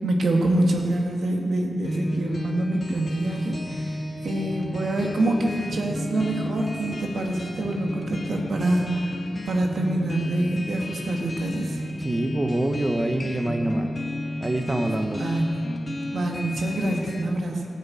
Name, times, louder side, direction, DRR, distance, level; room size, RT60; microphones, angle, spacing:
voice 1, 0.0-9.1 9.5-11.8 15.2-15.7 16.1-17.7, right 1 dB, 85° right, 1 dB, 1.9 m, -26 dB
sound 1, 1.8-17.2, left 1 dB, 40° left, 1.7 m, -33 dB
voice 2, 12.0-13.9 14.4-15.2, right 1 dB, 25° right, 5 dB, 0.9 m, -25 dB
13.5 x 8.6 x 8.5 m, 2.6 s
wide cardioid pair, 90°, 0 cm